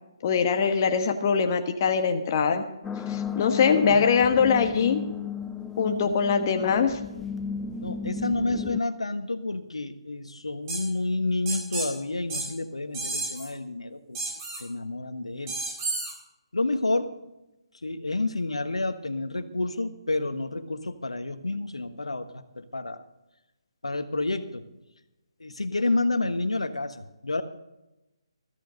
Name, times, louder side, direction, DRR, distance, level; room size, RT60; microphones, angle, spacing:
voice 1, 0.2-2.6 3.1-5.0 5.8-7.0, left 6 dB, 35° left, 6 dB, 1.4 m, -22 dB
sound 1, 2.8-8.8, left 6 dB, 5° left, 0.5 m, -34 dB
voice 2, 7.8-14.2 14.6-15.5 16.5-17.1 17.8-23.0 23.8-24.6 25.4-27.4, left 2 dB, 80° left, 9 dB, 1.4 m, -29 dB
sound 2, 10.7-10.8 11.5-11.9 12.3-12.5 12.9-13.5 14.1-14.6 15.5-16.1, right 3 dB, 25° right, 4.6 m, -31 dB
14.0 x 14.0 x 4.0 m, 0.95 s
figure-of-eight pair, 145°, 3 cm